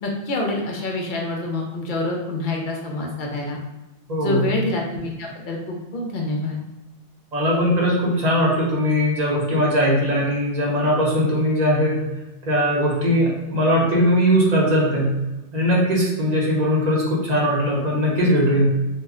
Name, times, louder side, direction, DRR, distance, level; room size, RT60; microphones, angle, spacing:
voice 1, 0.0-3.6 4.2-6.6, left 2 dB, 60° left, 0 dB, 0.6 m, -27 dB
voice 2, 4.1-4.5 7.3-12.0 12.5-15.2 15.5-18.8, equal, 45° right, -4 dB, 0.8 m, -20 dB
2.3 x 2.1 x 3.6 m, 0.98 s
omnidirectional pair, 1.1 m